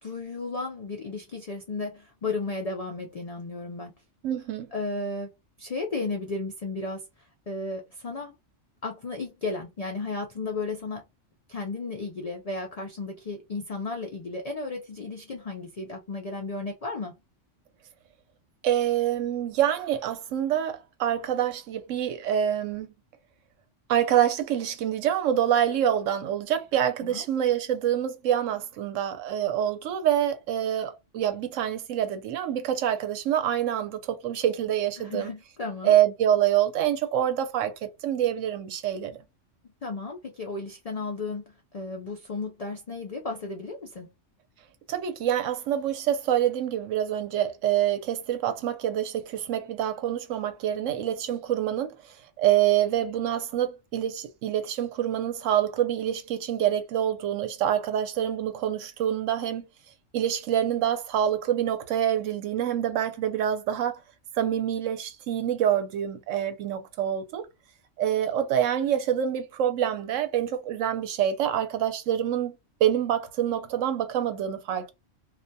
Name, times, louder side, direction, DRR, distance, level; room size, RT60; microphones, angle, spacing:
voice 1, 0.0-3.9 4.7-5.3 5.6-8.4 8.8-11.1 11.5-17.1 27.0-27.2 35.0-36.0 39.8-44.1, left 3 dB, 70° left, 0.3 m, -34 dB
voice 2, 4.2-4.7 18.6-22.9 23.9-35.3 35.8-39.2 44.9-59.7 60.1-64.0 64.3-67.5 68.0-72.5 72.8-74.9, right 10 dB, 85° right, 1.0 m, -26 dB
2.4 x 2.2 x 2.6 m
omnidirectional pair, 1.3 m